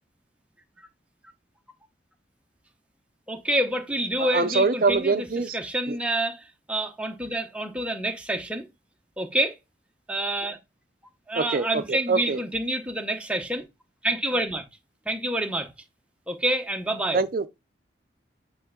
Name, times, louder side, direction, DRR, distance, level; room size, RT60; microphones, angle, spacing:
voice 1, 3.3-5.3 5.5-8.7 9.2-9.6 10.1-10.6 11.3-13.6 14.0-14.6 15.1-15.7 16.3-17.2, right 1 dB, 5° right, 0.8 m, -27 dB
voice 2, 4.2-5.6 5.9-6.0 11.3-12.4 17.1-17.5, right 4 dB, 50° right, 0.5 m, -24 dB
8.4 x 3.2 x 3.7 m
head